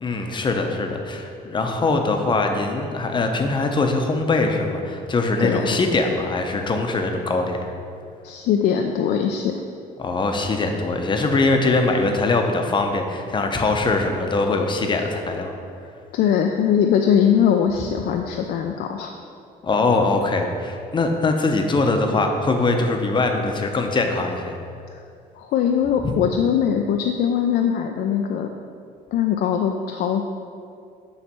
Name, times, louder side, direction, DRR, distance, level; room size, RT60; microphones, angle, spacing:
voice 1, 0.0-7.7 10.0-15.5 19.6-24.6 26.0-26.1, left 3 dB, 30° left, 4 dB, 0.7 m, -22 dB
voice 2, 5.4-5.8 8.2-9.6 16.1-19.1 24.9-25.0 25.4-28.5 29.1-30.2, left 8 dB, 65° left, 3 dB, 0.4 m, -21 dB
7.1 x 3.2 x 6.1 m, 2.4 s
cardioid pair, 110°, 17 cm